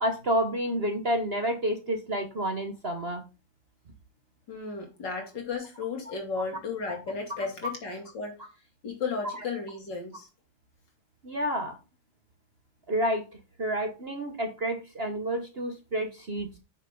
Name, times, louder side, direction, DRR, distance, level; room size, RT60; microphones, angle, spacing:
voice 1, 0.0-3.2 6.1-6.2 6.9-7.0 11.2-11.8 12.9-13.2 13.6-16.5, equal, 40° right, 1.1 m, -29 dB
voice 2, 4.5-8.4 8.8-10.3, left 4 dB, 65° left, 3.2 m, -34 dB
8.8 x 6.6 x 3.7 m
omnidirectional pair, 2.0 m